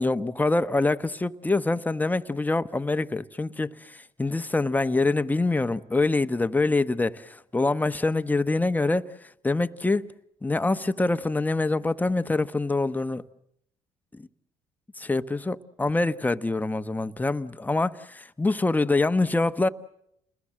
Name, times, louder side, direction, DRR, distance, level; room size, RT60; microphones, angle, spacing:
voice 1, 0.0-10.1 10.4-13.2 14.1-14.3 15.0-19.7, left 2 dB, 10° left, 1.0 m, -25 dB
29.0 x 21.0 x 7.5 m
supercardioid pair, 80°, 14 cm